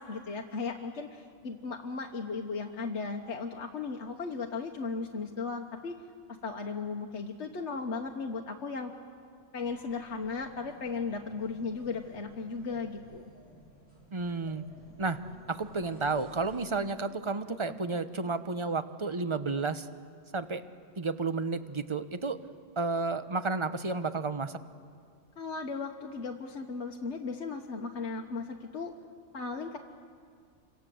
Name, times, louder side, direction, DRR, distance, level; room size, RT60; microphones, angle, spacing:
voice 1, 0.0-6.0 6.4-8.9 9.5-13.2 17.5-17.8 25.4-28.9 29.3-29.8, left 4 dB, 60° left, 2 dB, 1.5 m, -36 dB
sound 1, 9.6-17.1, right 1 dB, 65° right, 6.5 m, -55 dB
voice 2, 14.1-14.6 15.0-15.2 15.5-19.9 20.3-20.6 21.0-22.4 22.8-24.6, right 3 dB, 25° right, 11 dB, 0.9 m, -31 dB
28.0 x 26.0 x 7.7 m, 2.2 s
omnidirectional pair, 1.3 m